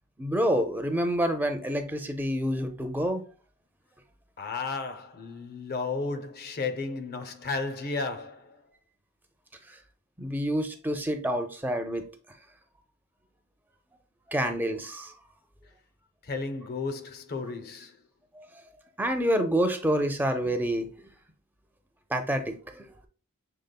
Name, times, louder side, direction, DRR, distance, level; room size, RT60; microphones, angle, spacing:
voice 1, 0.2-3.2 10.2-12.0 14.3-15.1 19.0-20.9 22.1-22.9, equal, 10° right, 0.5 m, -27 dB
voice 2, 4.4-8.6 16.2-18.0, left 4 dB, 45° left, 0.5 m, -33 dB
6.6 x 3.4 x 2.2 m
head